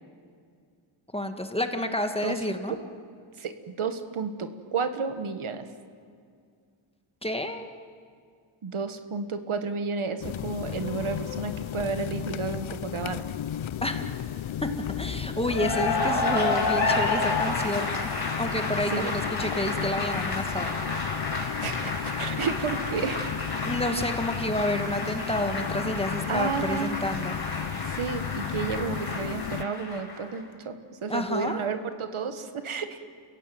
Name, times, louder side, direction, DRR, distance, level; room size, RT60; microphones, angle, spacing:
voice 1, 1.1-2.8 7.2-7.7 13.8-14.1 14.6-14.7 15.0-18.1 18.4-20.8 23.6-27.4 31.1-31.6, left 1 dB, 10° left, 6 dB, 1.9 m, -29 dB
voice 2, 3.4-5.7 8.6-13.2 18.9-19.1 21.6-23.5 23.9-24.1 26.3-27.0 27.8-33.0, right 5 dB, 75° right, 9 dB, 1.7 m, -32 dB
sound 1, 10.2-29.6, left 10 dB, 70° left, 0.7 m, -34 dB
sound 2, 14.6-17.4, left 2 dB, 30° left, 2.8 m, -45 dB
Cheering / Applause, 15.4-30.4, left 3 dB, 50° left, 5.6 m, -31 dB
30.0 x 16.0 x 9.3 m, 2.2 s
wide cardioid pair, 80°, 49 cm